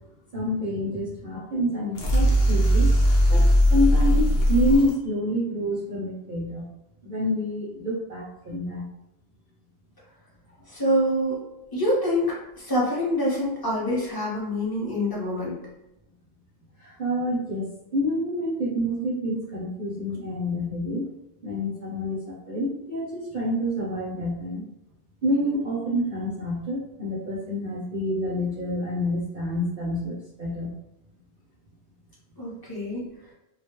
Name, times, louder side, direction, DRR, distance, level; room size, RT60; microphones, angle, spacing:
voice 1, 0.3-2.9 3.3-6.7 7.0-8.8 17.0-21.0 21.4-22.2 22.5-24.6 25.2-30.7, equal, 55° right, -6 dB, 0.6 m, -27 dB
sound 1, 2.0-4.9, equal, 70° left, 0.9 m, -19 dB
voice 2, 10.7-11.4 11.7-15.6 32.4-33.0, equal, 25° left, -6 dB, 0.7 m, -26 dB
2.2 x 2.0 x 2.9 m, 0.88 s
omnidirectional pair, 1.2 m